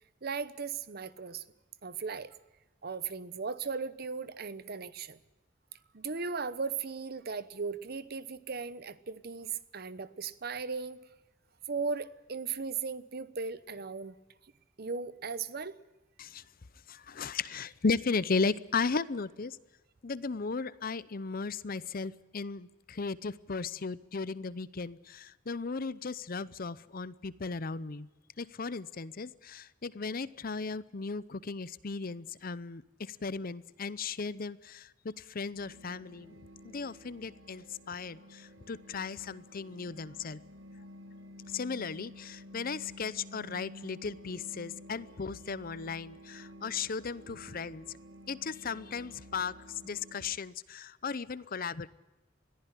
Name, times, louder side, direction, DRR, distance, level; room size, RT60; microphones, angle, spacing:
voice 1, 0.2-1.4 1.8-2.3 2.8-5.2 5.9-11.0 11.7-14.1 14.8-15.7, right 5 dB, 55° right, 16 dB, 1.0 m, -37 dB
voice 2, 16.9-19.6 20.0-28.1 28.4-36.3 36.6-40.4 41.5-47.9 48.3-51.9, left 4 dB, 50° left, 18 dB, 0.7 m, -36 dB
sound 1, 35.6-50.4, left 1 dB, 75° right, 1.7 m, -51 dB
21.0 x 14.5 x 9.9 m, 1.1 s
head